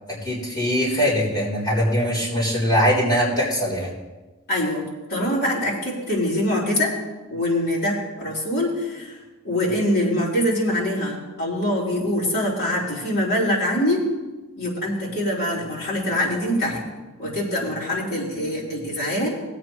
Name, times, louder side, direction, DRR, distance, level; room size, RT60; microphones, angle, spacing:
voice 1, 0.1-3.9, equal, 20° left, -7 dB, 3.8 m, -22 dB
voice 2, 4.5-4.8 5.1-6.9 7.3-9.2 9.4-14.0 14.5-16.8 17.2-19.3, left 1 dB, 55° left, -6 dB, 3.9 m, -24 dB
18.0 x 8.4 x 3.1 m, 1.2 s
head